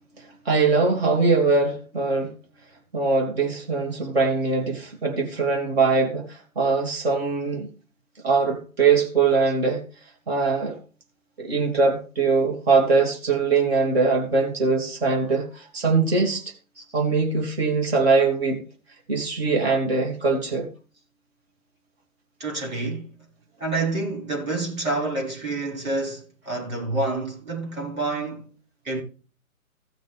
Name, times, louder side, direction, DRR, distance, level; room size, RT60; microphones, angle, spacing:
voice 1, 0.4-2.3 2.9-7.7 8.2-9.8 10.3-10.8 11.4-16.4 16.9-18.6 19.1-20.7, right 4 dB, 45° right, 3.1 m, -22 dB
voice 2, 22.4-23.1 23.6-28.5 28.8-29.0, right 2 dB, 70° right, 5.7 m, -28 dB
15.5 x 6.3 x 3.5 m
figure-of-eight pair, 140°, 43 cm